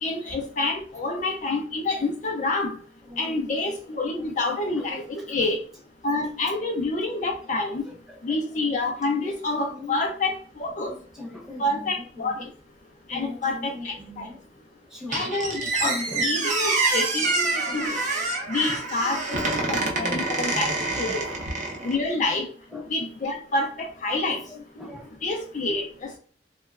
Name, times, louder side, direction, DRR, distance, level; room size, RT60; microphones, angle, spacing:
voice 1, 0.0-2.8 3.2-5.6 6.0-7.8 8.2-10.9 11.6-12.4 13.1-14.3 15.1-16.0 16.2-18.0 18.5-21.3 21.8-22.5 22.9-24.4 25.2-26.2, left 2 dB, 45° left, 0.4 m, -28 dB
voice 2, 3.0-3.4 4.1-4.3 4.7-5.1 5.3-5.6 7.8-8.4 9.7-10.0 10.9-12.5 13.1-14.4 14.9-15.4 15.8-16.3 17.2-17.9 18.7-18.8 19.1-19.3 19.5-21.5 22.7-22.9 24.3-25.1, left 2 dB, 5° right, 0.8 m, -40 dB
Squeak, 15.1-22.0, right 3 dB, 45° right, 0.6 m, -26 dB
2.9 x 2.1 x 2.3 m
head